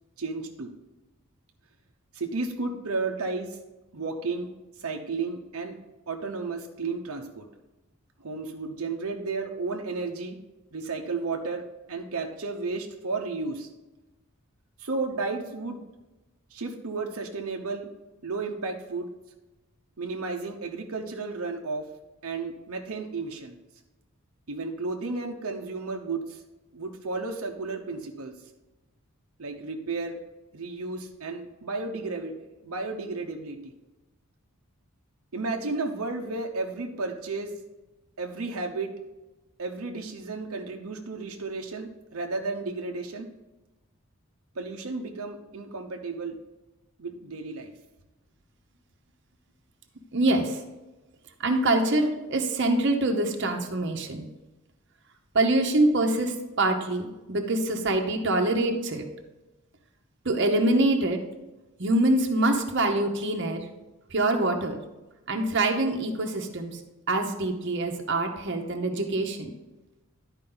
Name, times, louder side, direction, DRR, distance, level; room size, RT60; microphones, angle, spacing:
voice 1, 0.2-0.7 2.1-3.6 3.9-4.5 4.8-5.8 6.1-7.5 8.2-10.4 10.7-11.6 11.9-13.7 14.8-15.8 16.5-17.9 18.2-19.1 20.0-21.9 22.2-23.5 24.5-26.4 26.7-28.3 29.4-30.2 30.5-33.7 35.3-37.5 38.2-38.9 39.6-43.3 44.5-46.4 47.0-47.7, right 3 dB, 75° right, 3 dB, 0.8 m, -33 dB
voice 2, 50.1-50.6 51.4-54.3 55.3-59.0 60.2-61.2 61.8-63.6 64.1-64.8 65.3-66.8 67.1-69.5, right 2 dB, 55° right, 3 dB, 1.0 m, -25 dB
11.5 x 4.9 x 3.9 m, 1.1 s
head